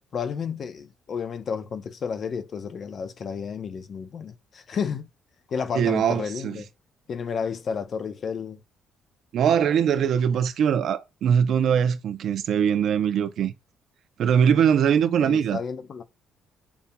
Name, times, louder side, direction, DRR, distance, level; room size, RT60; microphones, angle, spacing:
voice 1, 0.1-5.1 5.5-6.7 7.1-8.6 15.2-16.0, left 6 dB, 50° left, 0.6 m, -31 dB
voice 2, 5.7-6.6 9.3-13.5 14.2-15.6, right 8 dB, 65° right, 0.5 m, -22 dB
7.0 x 2.7 x 2.2 m
cardioid pair, 85°, 0 cm